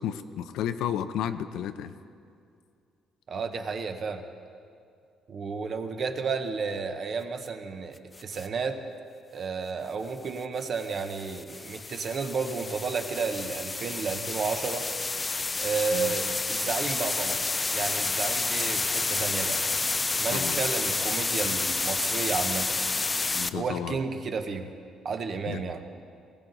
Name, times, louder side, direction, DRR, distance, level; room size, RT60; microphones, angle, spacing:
voice 1, 0.0-1.9 15.9-16.1 20.3-20.6 23.3-24.0 25.5-25.6, left 9 dB, 80° left, 10 dB, 0.6 m, -32 dB
voice 2, 3.3-4.2 5.3-8.8 9.3-14.9 15.6-17.4 17.7-19.6 20.2-22.8 23.5-24.7 25.0-25.8, right 5 dB, 35° right, 7 dB, 0.9 m, -32 dB
sound 1, 8.2-8.5 10.6-23.5, left 3 dB, 15° left, 0.3 m, -30 dB
19.0 x 16.5 x 4.0 m, 2.4 s
cardioid pair, 170°, 0 cm